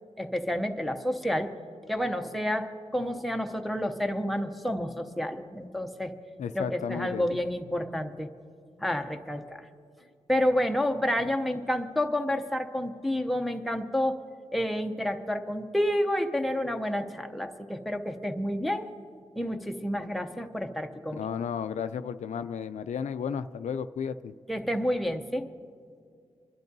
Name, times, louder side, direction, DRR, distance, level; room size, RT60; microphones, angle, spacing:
voice 1, 0.2-1.5 1.9-6.1 6.5-8.3 8.8-9.7 10.3-14.2 14.5-18.9 19.4-21.3 24.5-25.5, left 1 dB, ahead, 5 dB, 0.6 m, -29 dB
voice 2, 6.4-7.3 21.2-24.3, left 7 dB, 80° left, 11 dB, 0.4 m, -33 dB
28.5 x 12.0 x 2.7 m, 2.3 s
wide cardioid pair, 150°, 12 cm